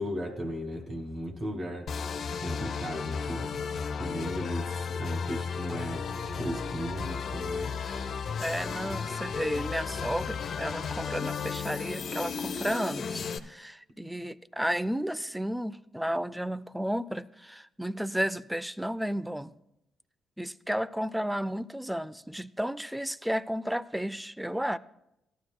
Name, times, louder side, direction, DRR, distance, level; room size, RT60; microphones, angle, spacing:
voice 1, 0.0-1.9 2.4-3.6 4.0-6.1 6.4-7.7, equal, 45° right, 3 dB, 2.0 m, -36 dB
sound 1, 1.9-13.4, left 5 dB, 65° left, 0.7 m, -34 dB
voice 2, 8.4-19.5 20.4-24.8, equal, 5° right, 16 dB, 0.5 m, -33 dB
17.5 x 12.5 x 2.2 m, 0.85 s
cardioid pair, 70°, 0 cm